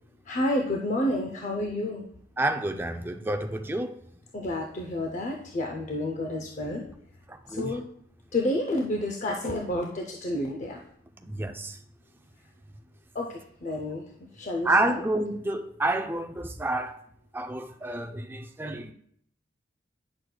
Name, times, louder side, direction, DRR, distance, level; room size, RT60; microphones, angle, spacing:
voice 1, 0.3-2.1 4.3-6.9 7.5-7.8 8.3-10.8 13.1-14.0 14.3-15.0, left 1 dB, 40° left, 0.5 m, -30 dB
voice 2, 2.4-4.0 7.3-7.8 11.2-11.8 14.6-17.0 17.3-18.9, right 2 dB, 10° right, 0.3 m, -29 dB
9.4 x 6.1 x 2.2 m
head